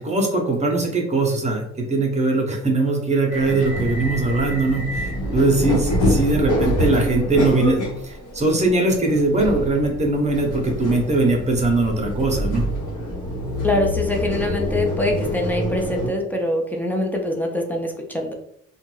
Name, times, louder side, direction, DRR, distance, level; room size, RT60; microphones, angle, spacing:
voice 1, 0.0-12.7, right 2 dB, 25° right, 2 dB, 0.8 m, -21 dB
sound 1, 3.3-16.1, equal, 85° left, 1.0 m, -26 dB
voice 2, 13.6-18.3, left 1 dB, 5° left, 1 dB, 0.5 m, -24 dB
2.5 x 2.3 x 3.1 m, 0.72 s
cardioid pair, 90°, 30 cm